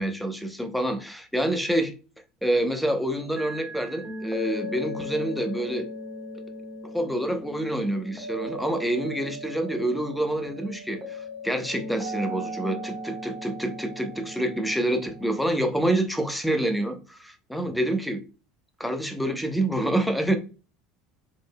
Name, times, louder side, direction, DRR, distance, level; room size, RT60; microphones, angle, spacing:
voice 1, 0.0-1.9 2.4-5.9 6.9-18.2 18.8-20.4, right 1 dB, ahead, 0.9 m, -27 dB
sound 1, 3.4-15.4, equal, 25° right, 1.6 m, -37 dB
5.1 x 3.7 x 2.3 m
hypercardioid pair, 75°, 0 cm